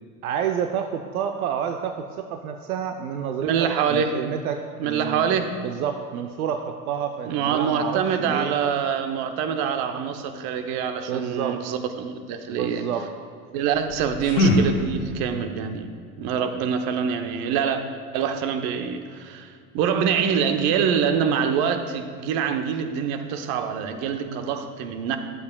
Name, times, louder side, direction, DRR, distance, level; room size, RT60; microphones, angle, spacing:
voice 1, 0.2-8.5 11.1-11.6 12.5-13.1, right 8 dB, 80° right, 6 dB, 0.6 m, -29 dB
voice 2, 3.4-4.2 4.8-5.5 7.3-12.9 13.5-15.9 16.2-17.8 18.1-25.2, right 7 dB, 55° right, 7 dB, 0.9 m, -25 dB
sound 1, 13.7-15.4, left 1 dB, 65° left, 1.7 m, -23 dB
12.0 x 8.4 x 2.3 m, 2.2 s
hypercardioid pair, 85°, 43 cm